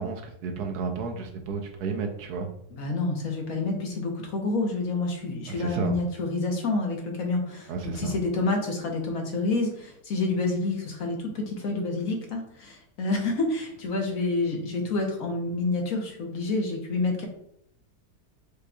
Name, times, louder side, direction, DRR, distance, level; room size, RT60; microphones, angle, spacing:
voice 1, 0.0-2.5 5.5-5.9 7.7-8.2, right 5 dB, 70° right, 4 dB, 1.1 m, -32 dB
voice 2, 2.8-17.3, left 3 dB, 60° left, 1 dB, 1.1 m, -28 dB
5.0 x 4.2 x 2.3 m, 0.71 s
omnidirectional pair, 1.8 m